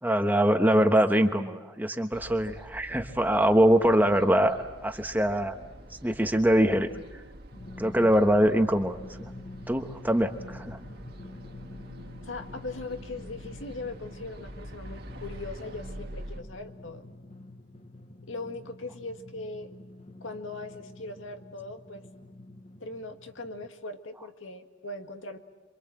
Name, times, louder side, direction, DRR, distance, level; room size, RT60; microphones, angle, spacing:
voice 1, 0.0-5.6 6.0-6.9 7.8-9.3 9.7-10.8, equal, 10° right, 6 dB, 1.2 m, -23 dB
sound 1, 2.1-16.4, right 1 dB, 50° right, 1.7 m, -46 dB
Drum, 7.5-23.7, left 2 dB, 35° left, 1.1 m, -47 dB
voice 2, 12.2-17.0 18.2-19.7 20.2-22.0 22.8-25.4, left 2 dB, 80° left, 6 dB, 1.9 m, -40 dB
27.5 x 24.5 x 7.8 m, 1.2 s
head